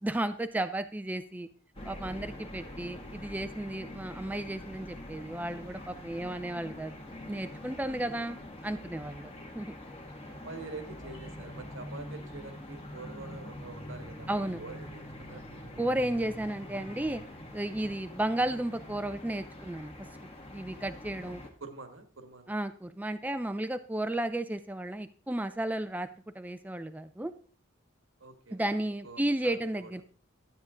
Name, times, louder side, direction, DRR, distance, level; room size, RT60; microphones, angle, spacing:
voice 1, 0.0-1.5 1.9-6.9 7.3-8.4 8.6-9.7 14.3-14.6 15.8-17.2 17.5-19.9 20.5-21.4 22.5-26.1 26.4-27.3 28.5-30.0, right 1 dB, 10° right, 10 dB, 0.4 m, -33 dB
sound 1, 1.7-21.5, left 1 dB, 30° left, 1.6 m, -45 dB
voice 2, 2.4-2.7 7.9-8.3 10.3-15.8 21.6-22.5 28.2-28.8 29.0-30.0, right 3 dB, 85° right, 7 dB, 1.5 m, -46 dB
12.0 x 8.4 x 3.7 m, 0.43 s
head